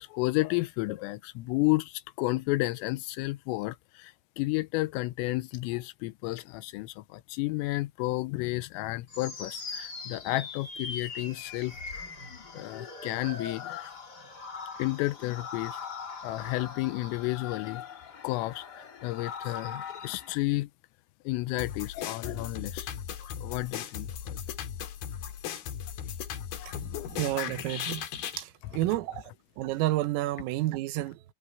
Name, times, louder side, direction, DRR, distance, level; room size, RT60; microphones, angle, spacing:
voice 1, 0.0-12.0 12.5-13.9 14.8-15.8 16.2-17.9 18.2-20.7 21.3-22.9 23.4-24.4 26.6-26.7, left 20 dB, 85° left, 3.4 m, -32 dB
sound 1, 9.1-20.3, left 5 dB, 35° left, 1.7 m, -41 dB
sound 2, 21.6-28.4, left 9 dB, 60° left, 3.1 m, -37 dB
voice 2, 27.1-28.1 28.4-29.2 29.6-31.2, right 16 dB, 85° right, 3.7 m, -30 dB
omnidirectional pair, 5.9 m